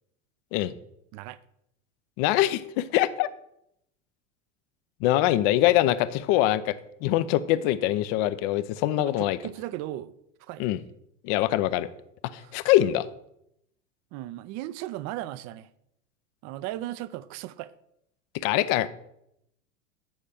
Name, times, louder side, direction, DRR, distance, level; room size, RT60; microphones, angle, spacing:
voice 1, 2.2-3.3 5.0-9.4 10.6-10.8 11.2-11.9 12.3-13.1 18.3-18.9, left 14 dB, 55° left, 0.6 m, -23 dB
voice 2, 9.0-10.1 10.4-10.6 12.4-12.5 14.1-15.7 16.4-17.7, right 14 dB, 50° right, 0.5 m, -36 dB
9.1 x 4.3 x 4.9 m
hypercardioid pair, 90°, 36 cm